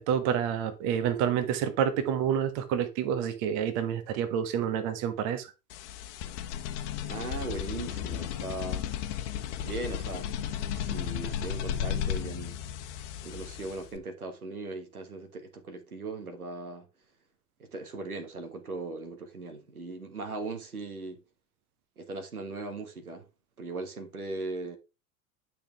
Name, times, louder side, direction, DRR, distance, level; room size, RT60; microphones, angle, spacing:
voice 1, 0.0-5.5, right 8 dB, 45° right, 1.4 m, -28 dB
sound 1, 5.7-14.0, left 9 dB, 50° left, 1.2 m, -34 dB
voice 2, 7.1-8.9 9.6-12.6 13.2-16.9 17.6-21.2 22.0-23.3 23.6-24.8, right 3 dB, 80° right, 1.6 m, -39 dB
10.0 x 5.9 x 3.5 m
figure-of-eight pair, 80°, 43 cm